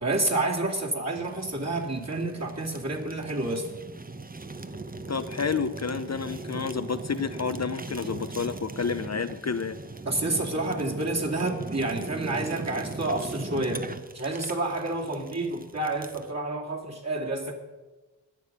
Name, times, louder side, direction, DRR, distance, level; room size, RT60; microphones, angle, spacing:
voice 1, 0.0-3.6 10.1-13.9 14.1-17.5, right 2 dB, 35° right, -1 dB, 2.6 m, -29 dB
Fire, 1.2-16.3, right 3 dB, 20° right, 0.8 m, -39 dB
voice 2, 5.1-9.8, left 5 dB, 35° left, 11 dB, 0.6 m, -30 dB
20.5 x 7.0 x 5.4 m, 1.2 s
cardioid pair, 60°, 46 cm